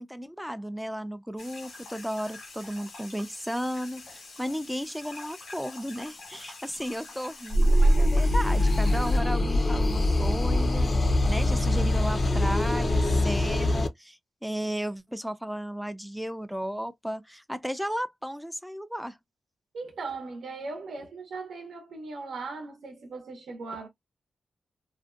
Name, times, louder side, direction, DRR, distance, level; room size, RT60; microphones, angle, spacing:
voice 1, 0.0-19.2, equal, ahead, 0.3 m, -34 dB
sound 1, 1.4-9.2, left 3 dB, 85° left, 1.1 m, -46 dB
sound 2, 7.5-13.9, left 1 dB, 45° left, 0.5 m, -23 dB
voice 2, 19.7-23.9, right 3 dB, 85° right, 0.7 m, -38 dB
2.5 x 2.1 x 2.4 m
wide cardioid pair, 105°, 0 cm